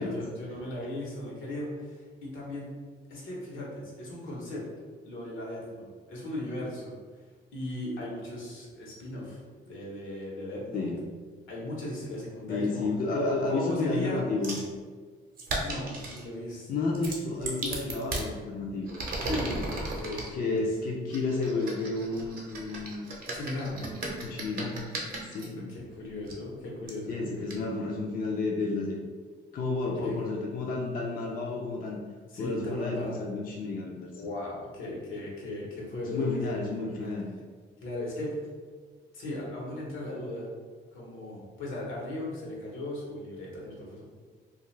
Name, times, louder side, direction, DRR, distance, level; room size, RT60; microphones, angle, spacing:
voice 1, 0.0-2.7 3.1-4.6 5.0-6.9 7.5-9.4 9.7-10.9 11.5-12.9 13.5-14.2 15.6-16.8 17.9-18.1 19.2-20.6 23.3-23.8 25.6-27.3 30.0-30.1 32.3-33.1 34.2-36.6 37.0-37.1 37.8-38.5 39.1-40.5 40.9-44.1, left 1 dB, 85° left, -3 dB, 0.9 m, -37 dB
voice 2, 12.5-14.6 16.7-18.9 20.3-23.1 24.2-24.8 25.3-25.7 27.1-29.0 29.5-32.0 32.4-34.1 36.1-37.3, left 3 dB, 45° left, -1 dB, 0.4 m, -31 dB
sound 1, 14.4-14.7 15.4-16.2 16.9-18.3 18.8-20.3 21.1-25.5 26.3-26.4 26.9-27.0 27.5-27.6, right 2 dB, 45° right, 0.7 m, -36 dB
2.4 x 2.3 x 3.1 m, 1.5 s
cardioid pair, 90°, 20 cm